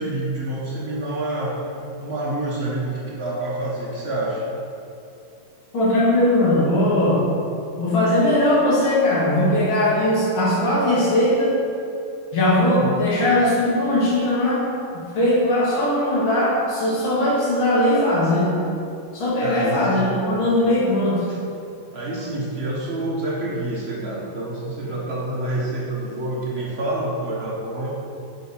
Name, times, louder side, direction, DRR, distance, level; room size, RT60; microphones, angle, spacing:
voice 1, 0.0-1.6 2.0-4.4 12.7-13.0 19.4-20.1 21.3-21.4 21.9-28.0, right 1 dB, 45° right, -5 dB, 0.9 m, -27 dB
voice 2, 5.7-7.2 7.8-11.6 12.3-14.6 14.9-18.5 19.1-21.3, left 1 dB, 85° left, -6 dB, 2.4 m, -19 dB
5.2 x 4.5 x 5.4 m, 2.6 s
omnidirectional pair, 2.2 m